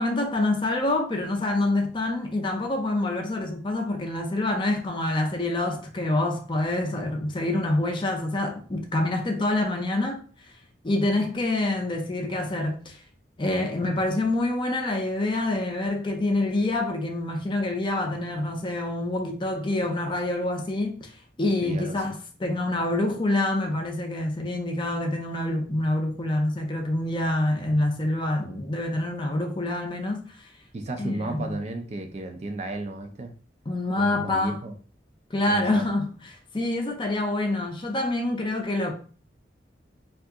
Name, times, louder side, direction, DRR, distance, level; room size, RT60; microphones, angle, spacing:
voice 1, 0.0-10.2 10.8-13.0 13.4-21.1 21.4-30.5 31.0-31.6 33.7-34.6 35.3-36.1 36.5-38.9, left 2 dB, 25° left, 0.5 m, -26 dB
voice 2, 21.6-22.0 30.7-33.3 34.0-34.7 35.5-35.8, right 2 dB, 35° right, 0.4 m, -33 dB
2.7 x 2.4 x 3.5 m
head